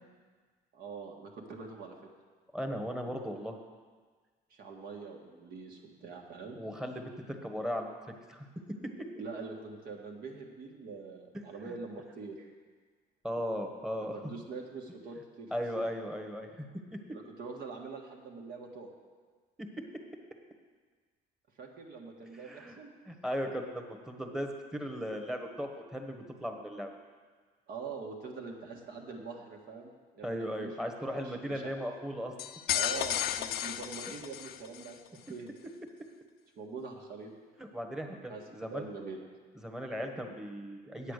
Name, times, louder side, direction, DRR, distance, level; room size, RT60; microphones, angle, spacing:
voice 1, 0.7-1.9 4.5-6.6 9.2-12.5 14.0-15.5 15.8-15.9 17.1-18.9 21.6-22.9 27.7-30.7 31.0-31.7 32.7-35.5 36.6-37.3 38.3-38.4 38.7-39.2, right 4 dB, 65° right, 0 dB, 1.7 m, -44 dB
voice 2, 2.5-3.5 6.5-8.0 8.3-8.5 13.2-14.2 15.5-16.7 16.9-17.0 22.3-22.8 23.1-26.9 30.2-32.3 37.6-38.9 39.6-41.1, equal, 5° right, 4 dB, 1.2 m, -37 dB
sound 1, 32.4-34.9, left 11 dB, 65° left, 0.5 m, -33 dB
8.7 x 8.2 x 6.6 m, 1.5 s
cardioid pair, 110°, 17 cm